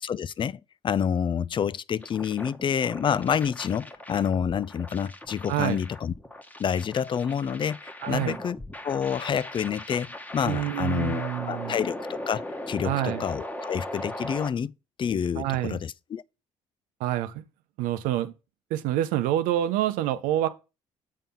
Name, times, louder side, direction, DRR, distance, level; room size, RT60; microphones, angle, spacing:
voice 1, 0.0-6.1 6.6-8.6 8.8-14.7 15.0-16.2, left 8 dB, 35° left, 0.4 m, -28 dB
sound 1, 2.0-14.5, left 1 dB, 10° left, 1.2 m, -39 dB
voice 2, 8.0-8.4 10.4-11.8 12.8-13.2 15.4-15.8 17.0-17.4 17.8-18.3 18.7-20.5, right 13 dB, 80° right, 0.7 m, -27 dB
7.4 x 3.7 x 5.6 m
hypercardioid pair, 60°, 14 cm